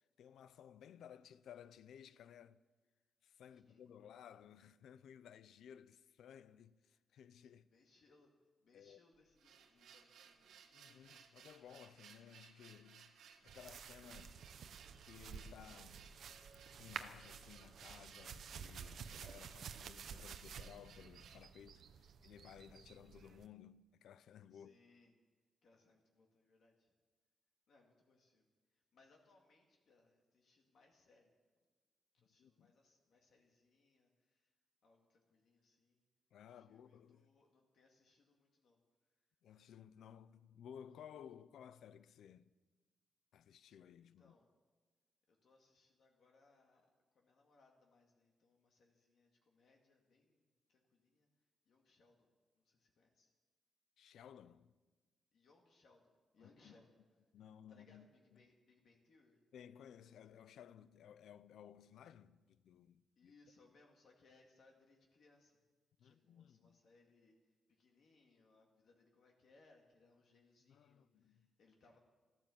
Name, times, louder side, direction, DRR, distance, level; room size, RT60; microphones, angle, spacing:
voice 1, 0.2-2.6 3.2-7.7 8.7-9.0 10.7-13.2 13.4-14.4 15.0-16.1 16.8-24.7 32.4-32.7 36.3-37.3 39.4-42.5 43.3-44.3 54.0-54.7 56.4-56.7 57.3-58.1 59.5-63.3 66.0-66.8 70.7-71.5, left 9 dB, 85° left, 0.5 m, -58 dB
voice 2, 3.5-3.8 7.6-10.6 24.5-25.2 25.6-26.9 27.7-31.4 32.1-34.6 34.8-36.0 36.5-38.8 39.1-39.3 44.0-44.5 45.3-46.9 47.1-53.3 55.3-57.0 57.7-59.4 63.2-65.6 66.0-72.0, left 3 dB, 60° left, 2.1 m, -71 dB
sound 1, 9.1-21.5, right 7 dB, 85° right, 1.3 m, -62 dB
sound 2, 13.5-23.5, right 7 dB, 65° right, 0.7 m, -52 dB
sound 3, 15.9-19.5, right 2 dB, 40° right, 1.9 m, -72 dB
14.0 x 13.5 x 7.2 m
wide cardioid pair, 155°, 0 cm